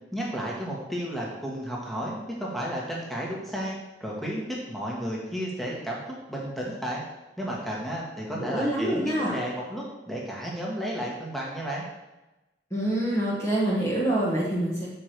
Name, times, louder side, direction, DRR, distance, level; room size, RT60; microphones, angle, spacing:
voice 1, 0.1-4.4 4.7-6.0 6.3-7.0 7.4-11.8, equal, ahead, -4 dB, 1.6 m, -32 dB
voice 2, 8.3-9.3 12.7-14.9, right 1 dB, 15° left, -5 dB, 1.3 m, -26 dB
6.1 x 4.6 x 6.6 m, 1.0 s
head